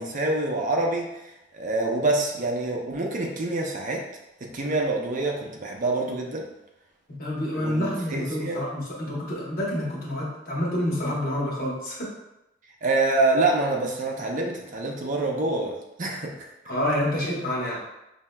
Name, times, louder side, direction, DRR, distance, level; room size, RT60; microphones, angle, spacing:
voice 1, 0.0-4.0 4.4-6.4 7.6-8.6 12.8-16.5, right 2 dB, 45° right, 0 dB, 0.6 m, -26 dB
voice 2, 7.2-12.1 16.7-17.8, left 1 dB, 55° left, -4 dB, 1.1 m, -28 dB
5.5 x 2.7 x 2.2 m, 0.90 s
head